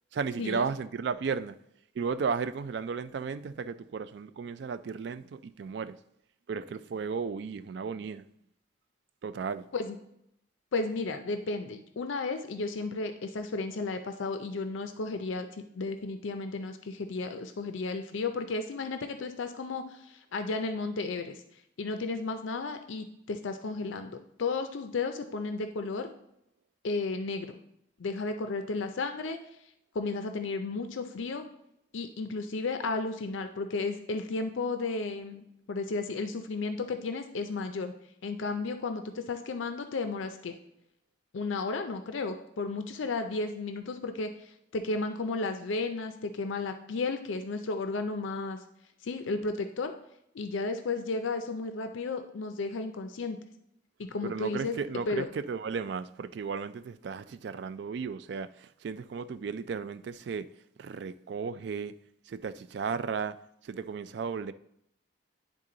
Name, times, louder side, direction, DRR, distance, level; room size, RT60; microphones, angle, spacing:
voice 1, 0.1-1.6 2.0-6.0 6.5-8.2 9.2-9.7 54.2-60.5 60.8-61.9 62.3-63.4 63.6-64.5, right 5 dB, 60° right, 0.3 m, -34 dB
voice 2, 10.7-21.4 21.8-26.1 26.8-27.6 28.0-29.4 29.9-31.4 31.9-37.9 38.2-40.6 41.3-48.6 49.0-49.9 50.3-53.4 54.0-54.8 55.1-55.3, left 3 dB, 75° left, 0.5 m, -33 dB
10.0 x 3.7 x 3.8 m
head